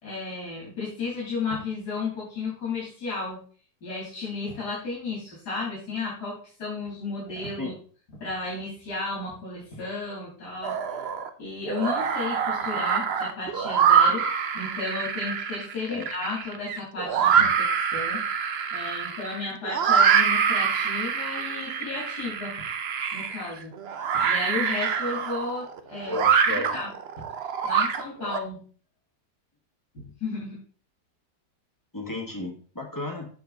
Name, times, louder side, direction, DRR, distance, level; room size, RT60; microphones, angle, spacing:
voice 1, 0.0-3.4 3.8-7.7 8.2-10.8 11.4-14.2 14.5-18.2 18.7-22.6 23.1-23.7 24.2-26.2 26.5-26.9 27.6-28.6 29.9-30.6, left 3 dB, 70° left, -5 dB, 3.8 m, -33 dB
sound 1, 10.6-11.3 11.7-28.4, right 7 dB, 55° right, 0.7 m, -25 dB
voice 2, 26.1-26.8 31.9-33.3, left 2 dB, 10° left, 1 dB, 1.6 m, -33 dB
7.9 x 6.9 x 4.0 m, 0.43 s
omnidirectional pair, 1.8 m